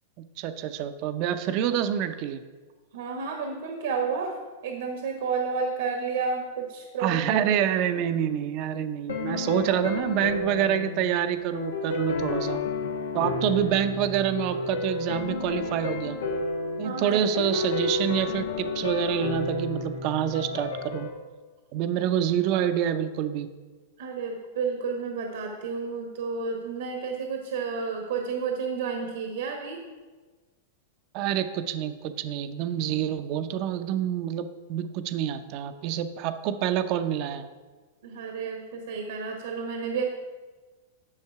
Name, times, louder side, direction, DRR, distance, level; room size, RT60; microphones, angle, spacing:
voice 1, 0.4-2.4 7.0-12.6 13.1-16.2 16.8-21.1 21.7-23.5 31.1-37.5, right 10 dB, 45° right, 10 dB, 0.7 m, -27 dB
voice 2, 2.9-4.3 4.6-7.5 16.8-17.2 24.0-29.8 38.0-40.0, right 5 dB, 75° right, 2 dB, 1.4 m, -31 dB
sound 1, 9.1-21.1, left 3 dB, 90° left, 1.1 m, -31 dB
9.7 x 6.4 x 4.7 m, 1.3 s
hypercardioid pair, 125°, 0 cm